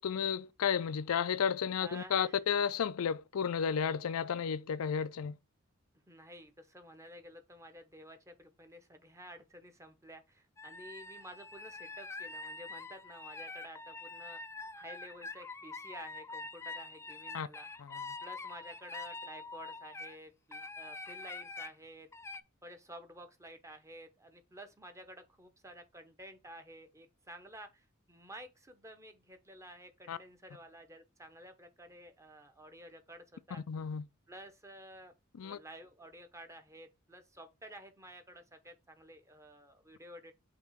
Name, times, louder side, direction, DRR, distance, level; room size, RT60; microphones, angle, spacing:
voice 1, 0.0-5.4 17.3-17.5 17.8-18.0 30.1-30.2 33.7-34.0 35.4-35.6, left 7 dB, 80° left, 0.4 m, -33 dB
voice 2, 1.8-2.4 6.1-14.4 14.7-17.7 18.2-22.1 22.6-33.6 34.3-35.1 35.4-40.3, right 1 dB, 15° right, 0.9 m, -52 dB
sound 1, 10.6-20.2 20.5-21.7 22.1-22.4, left 3 dB, 10° left, 0.3 m, -45 dB
5.9 x 3.0 x 5.6 m
head